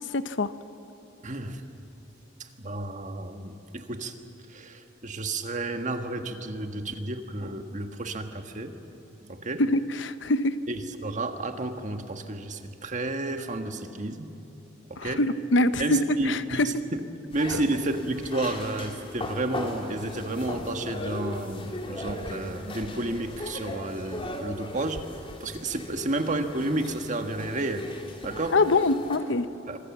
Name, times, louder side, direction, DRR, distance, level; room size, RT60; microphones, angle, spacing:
voice 1, 0.1-0.5 9.6-10.6 15.0-16.7 28.5-29.5, left 2 dB, 75° left, 12 dB, 0.9 m, -24 dB
voice 2, 1.2-1.6 2.4-4.2 4.5-8.7 9.2-9.6 10.7-14.3 14.9-15.2 15.8-16.7 17.3-25.0 25.4-27.9 28.2-28.6 29.7-29.8, right 2 dB, 40° right, 6 dB, 1.6 m, -31 dB
sound 1, 17.3-29.2, left 1 dB, 30° left, 2.7 m, -38 dB
26.0 x 24.0 x 7.3 m, 2.8 s
head